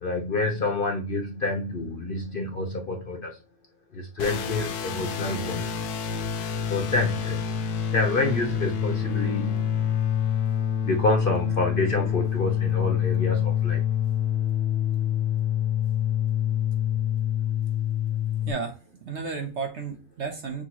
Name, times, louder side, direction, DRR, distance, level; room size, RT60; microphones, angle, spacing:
voice 1, 0.0-3.4 3.9-5.7 6.7-7.4 7.9-9.8 10.8-13.8, left 2 dB, 45° left, 0.9 m, -28 dB
sound 1, 4.2-18.5, left 9 dB, 85° left, 1.2 m, -26 dB
voice 2, 18.5-20.6, right 5 dB, 55° right, 0.9 m, -33 dB
6.2 x 2.9 x 2.9 m
omnidirectional pair, 1.6 m